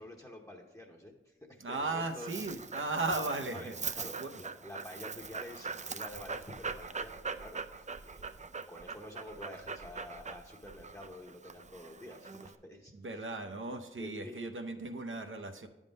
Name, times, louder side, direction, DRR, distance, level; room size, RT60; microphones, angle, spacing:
voice 1, 0.0-2.3 3.5-3.7 3.9-12.9 14.0-14.4, left 1 dB, 15° left, 0 dB, 0.8 m, -49 dB
voice 2, 1.6-3.7 4.2-4.4 12.9-15.7, right 2 dB, 70° right, 5 dB, 0.7 m, -36 dB
Dog, 1.7-12.5, right 4 dB, 35° right, 0.4 m, -42 dB
9.5 x 3.6 x 5.1 m, 1.0 s
wide cardioid pair, 70°, 21 cm